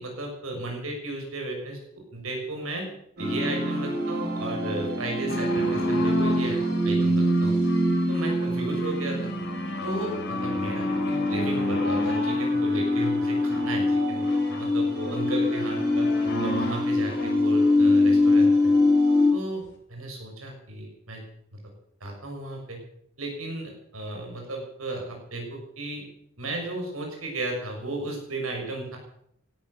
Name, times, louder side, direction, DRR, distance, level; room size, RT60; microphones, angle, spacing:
voice 1, 0.0-2.9 3.2-6.6 6.8-7.5 8.1-9.3 9.8-16.1 16.4-18.7 19.3-19.6 19.9-21.2 21.5-21.6 22.0-22.8 23.2-26.0 26.4-29.0, right 2 dB, 80° right, 1 dB, 6.3 m, -34 dB
sound 1, 3.2-19.3, left 1 dB, 50° right, 6.8 m, -24 dB
sound 2, 5.3-18.9 19.6-19.7, left 1 dB, 60° left, 4.0 m, -36 dB
17.5 x 12.5 x 6.6 m, 0.72 s
head